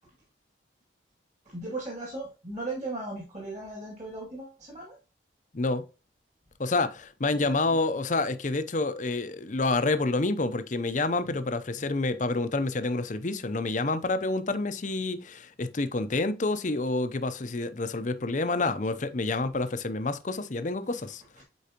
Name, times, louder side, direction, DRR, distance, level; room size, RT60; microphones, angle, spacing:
voice 1, 1.4-5.0 7.3-7.8 21.4-21.5, right 2 dB, 40° right, 2.4 m, -37 dB
voice 2, 5.5-5.9 6.6-21.2, left 3 dB, 40° left, 0.6 m, -28 dB
8.3 x 4.7 x 2.9 m
head